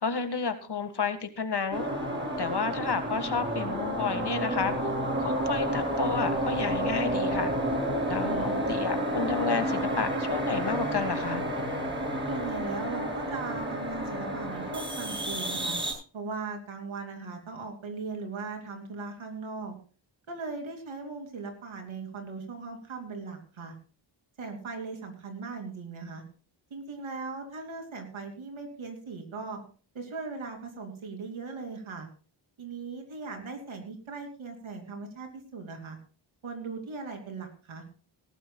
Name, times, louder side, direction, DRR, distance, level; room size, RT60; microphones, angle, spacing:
voice 1, 0.0-1.9 2.4-4.7 5.2-7.5 8.1-8.4 8.7-11.5, left 5 dB, 55° left, 9 dB, 1.7 m, -31 dB
sound 1, 1.7-15.9, right 1 dB, 25° right, 7.5 m, -30 dB
voice 2, 8.2-8.7 12.3-15.8 16.1-19.7 20.3-23.7 24.4-26.2 26.7-29.6 29.9-32.1 32.6-36.0 36.4-37.8, right 4 dB, 90° right, 3 dB, 3.0 m, -38 dB
18.5 x 14.0 x 2.3 m, 0.38 s
cardioid pair, 60°, 46 cm